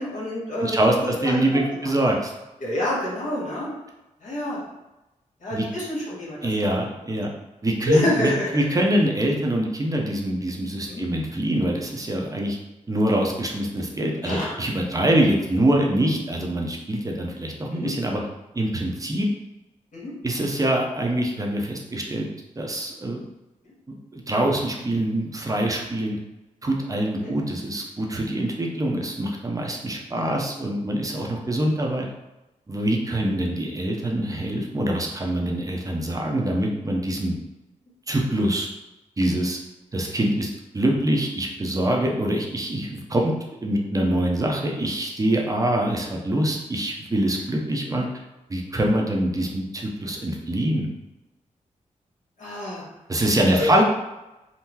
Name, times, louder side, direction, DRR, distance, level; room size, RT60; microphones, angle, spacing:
voice 1, 0.0-1.4 1.7-1.9 2.6-3.7 4.2-4.6 5.4-6.4 7.9-8.7 10.9-11.0 14.2-14.5 16.0-16.1 17.7-17.9 19.9-20.1 27.2-27.4 30.2-30.3 47.8-48.0 52.4-52.8 53.5-53.7, left 1 dB, 70° left, -6 dB, 1.4 m, -27 dB
voice 2, 0.6-2.3 5.5-5.7 6.4-7.3 7.6-12.6 12.9-18.2 18.5-19.3 20.2-22.3 22.6-23.2 24.1-26.2 26.6-32.1 32.7-37.3 38.1-38.7 39.2-39.6 39.9-43.3 43.6-48.1 48.5-50.9 53.1-53.8, right 1 dB, 25° right, 0 dB, 0.6 m, -24 dB
3.7 x 2.0 x 2.8 m, 0.99 s
cardioid pair, 70°, 13 cm